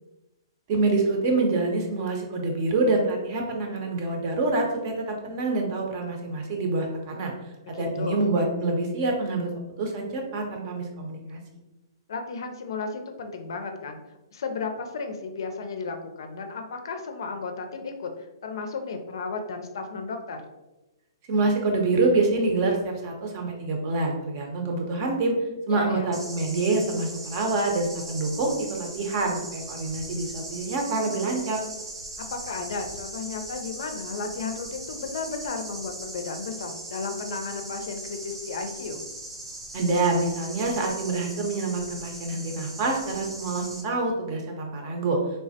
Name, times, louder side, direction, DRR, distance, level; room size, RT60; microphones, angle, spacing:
voice 1, 0.7-7.3 7.8-9.5 9.8-11.4 21.3-25.3 25.7-31.6 39.7-45.2, right 3 dB, 45° right, 1 dB, 0.7 m, -26 dB
voice 2, 7.7-8.3 12.1-14.0 14.3-20.4 25.7-26.1 32.2-39.0, left 4 dB, 65° left, 5 dB, 0.4 m, -34 dB
sound 1, 26.1-43.8, right 1 dB, 85° right, 0.7 m, -39 dB
3.2 x 2.1 x 2.7 m, 1.0 s
hypercardioid pair, 130°, 2 cm